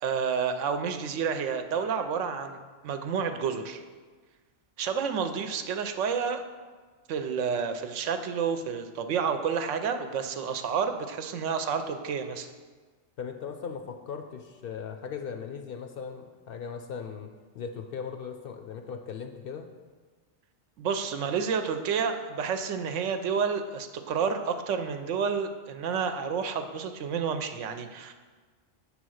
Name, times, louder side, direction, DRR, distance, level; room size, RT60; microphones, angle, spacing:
voice 1, 0.0-3.8 4.8-6.4 7.1-12.5 20.8-28.1, right 6 dB, 75° right, 7 dB, 0.9 m, -30 dB
voice 2, 13.2-17.3 17.5-19.7, left 6 dB, 60° left, 5 dB, 0.6 m, -38 dB
7.4 x 3.4 x 6.2 m, 1.4 s
omnidirectional pair, 1.3 m